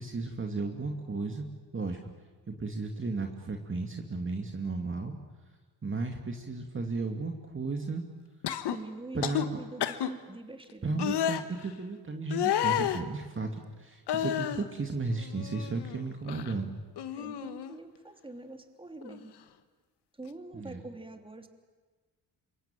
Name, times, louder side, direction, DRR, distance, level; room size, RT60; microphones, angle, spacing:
voice 1, 0.0-1.4 1.7-2.0 2.5-5.1 5.8-8.0 9.1-9.4 10.8-16.7 20.5-20.8, right 3 dB, 30° right, 3 dB, 2.6 m, -34 dB
sound 1, 8.4-8.8 9.2-9.5 9.8-10.1 11.0-11.4 12.3-13.0 14.1-14.7 15.1-16.0 16.3-16.5 17.0-17.8 19.0-19.2, left 11 dB, 75° left, 1.6 m, -31 dB
voice 2, 8.7-11.0 17.2-19.3 20.2-21.5, right 2 dB, 10° right, 6 dB, 3.1 m, -45 dB
27.0 x 23.5 x 9.2 m, 1.4 s
cardioid pair, 80°, 41 cm